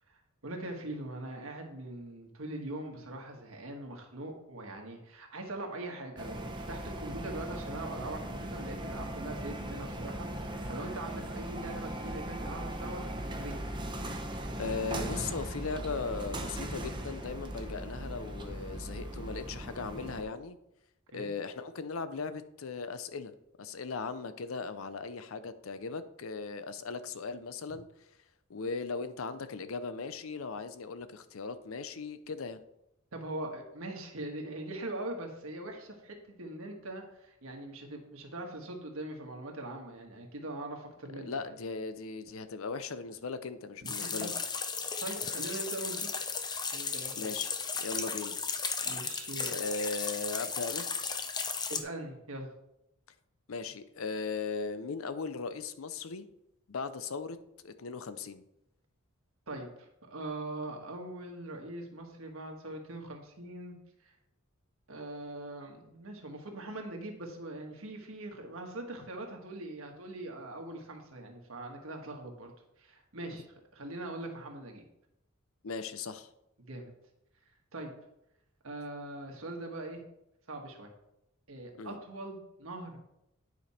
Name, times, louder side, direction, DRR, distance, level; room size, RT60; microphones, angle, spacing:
voice 1, 0.1-13.6 21.1-21.3 33.1-41.4 44.0-44.3 45.0-46.1 46.7-47.3 48.8-49.5 51.7-52.5 59.5-63.7 64.0-64.1 64.9-72.5 72.8-73.5 73.7-74.8 76.6-76.9 77.7-77.9 78.6-80.0 80.5-80.9 81.5-83.0, right 2 dB, 85° right, 2 dB, 1.6 m, -42 dB
sound 1, 6.2-20.2, right 1 dB, 25° right, 0.8 m, -39 dB
voice 2, 14.6-20.6 21.1-23.3 23.6-27.9 28.5-32.6 41.2-44.4 47.2-48.4 49.5-50.9 53.5-56.3 56.7-58.4 75.6-76.3 81.8-82.0, left 4 dB, 85° left, 12 dB, 0.6 m, -38 dB
sound 2, 43.9-51.8, left 5 dB, 20° left, 0.6 m, -35 dB
9.3 x 5.1 x 4.3 m, 0.83 s
head